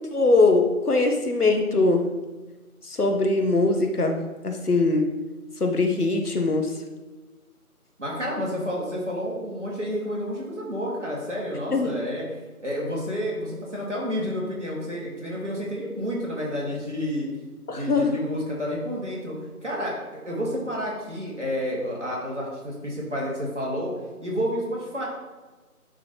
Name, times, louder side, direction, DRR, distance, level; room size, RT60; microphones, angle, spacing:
voice 1, 0.1-2.1 3.0-4.2 4.4-5.0 5.6-6.7 11.7-11.9 17.7-18.2, left 3 dB, 85° left, 4 dB, 1.1 m, -21 dB
voice 2, 8.0-12.3 12.6-17.3 17.7-19.3 19.6-23.9 24.2-25.0, equal, 50° right, -4 dB, 2.0 m, -30 dB
10.0 x 3.9 x 3.0 m, 1.2 s
figure-of-eight pair, 175°, 44 cm